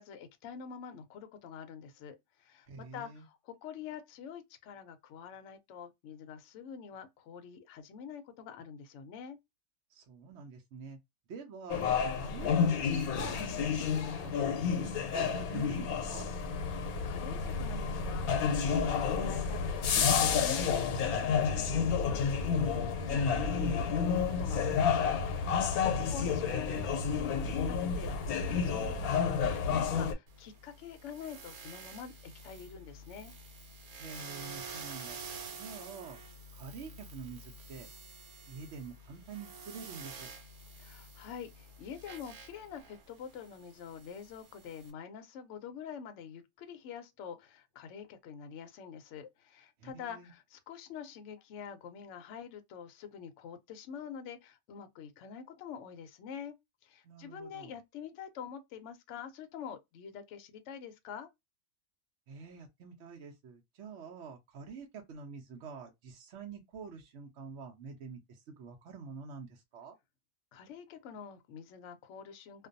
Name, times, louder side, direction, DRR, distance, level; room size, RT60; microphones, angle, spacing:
voice 1, 0.0-9.4 16.7-33.3 40.8-56.5 56.8-61.3 70.5-72.7, left 7 dB, 65° left, 0.8 m, -46 dB
voice 2, 2.7-3.3 9.9-11.0 11.3-16.3 25.8-26.5 34.0-35.2 35.5-36.2 36.5-37.9 38.5-40.3 49.8-50.3 57.0-57.8 62.3-69.9, right 5 dB, 65° right, 0.8 m, -47 dB
sound 1, 11.7-30.1, left 6 dB, 85° left, 1.1 m, -30 dB
sound 2, 30.3-44.9, right 4 dB, 80° right, 1.2 m, -49 dB
2.5 x 2.2 x 2.5 m
omnidirectional pair, 1.5 m